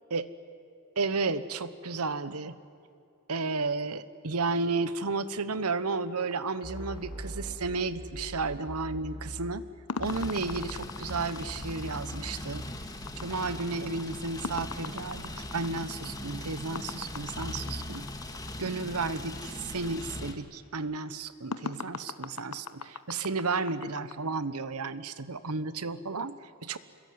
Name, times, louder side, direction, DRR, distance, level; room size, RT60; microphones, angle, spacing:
voice 1, 1.0-2.6 3.3-9.6 10.0-12.7 13.2-18.1 18.6-26.8, right 3 dB, 85° right, 14 dB, 1.2 m, -33 dB
sound 1, 6.3-7.7 9.9-18.5 21.5-24.2, left 5 dB, 80° left, 1.0 m, -41 dB
sound 2, 6.6-9.7 10.0-12.5, equal, 25° right, 4.1 m, -41 dB
sound 3, 10.0-20.3, left 1 dB, 15° left, 2.0 m, -40 dB
27.5 x 22.0 x 9.5 m, 2.5 s
head